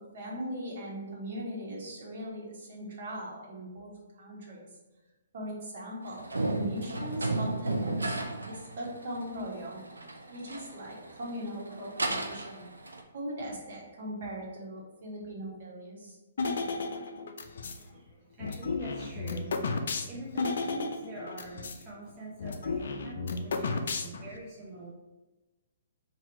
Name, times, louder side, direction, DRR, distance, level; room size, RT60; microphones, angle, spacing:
voice 1, 0.1-3.9 4.2-4.7 5.3-9.8 10.3-12.7 13.1-16.2, equal, 60° right, -3 dB, 1.3 m, -39 dB
sound 1, 6.0-13.0, right 2 dB, 90° right, 0.4 m, -34 dB
sound 2, 16.4-17.8 18.4-21.8 22.1-22.2 22.4-24.4, left 4 dB, 65° left, 0.4 m, -33 dB
voice 2, 17.6-19.6 20.1-24.9, right 1 dB, 25° right, -5 dB, 0.7 m, -44 dB
2.9 x 2.6 x 4.1 m, 1.1 s
hypercardioid pair, 130°, 0 cm